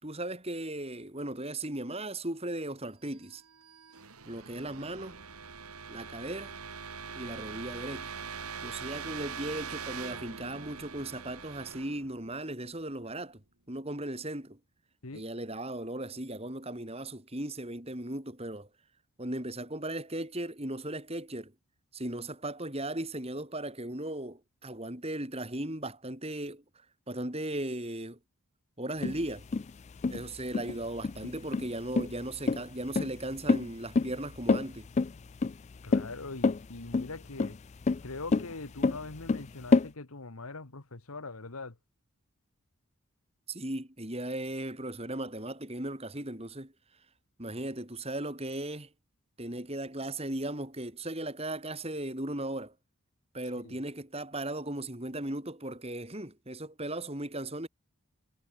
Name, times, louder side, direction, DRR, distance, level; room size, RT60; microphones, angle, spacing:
voice 1, 0.0-3.4 4.3-5.2 5.9-6.6 7.1-8.1 8.6-14.6 15.1-18.7 19.2-21.5 21.9-26.6 27.1-28.2 28.8-29.4 30.1-34.9 43.5-46.7 47.4-48.9 49.4-52.7 53.3-57.7, right 1 dB, 25° right, 3.7 m, -37 dB
sound 1, 3.2-13.0, right 6 dB, 85° right, 2.8 m, -43 dB
sound 2, 29.0-39.9, left 4 dB, 30° left, 0.3 m, -28 dB
voice 2, 35.8-37.6 38.0-41.8 53.6-53.8, left 3 dB, 80° left, 1.7 m, -42 dB
head